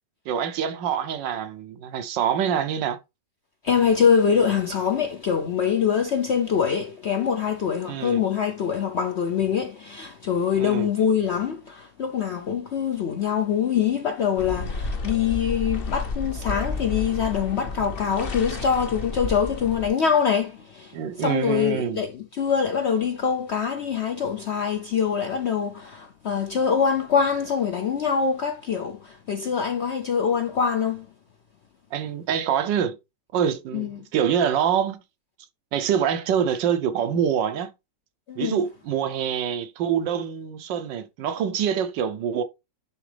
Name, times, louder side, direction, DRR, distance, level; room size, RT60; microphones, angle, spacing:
voice 1, 0.3-3.0 7.8-8.2 10.6-10.9 20.9-22.0 31.9-33.0 33.3-35.0 35.7-37.7 38.4-42.4, right 8 dB, 85° right, 1.5 m, -25 dB
voice 2, 3.6-31.1 33.7-33.9 38.3-38.6, left 7 dB, 70° left, 0.6 m, -24 dB
sound 1, 14.4-19.9, left 3 dB, 40° left, 0.9 m, -31 dB
10.0 x 3.7 x 3.3 m
omnidirectional pair, 1.9 m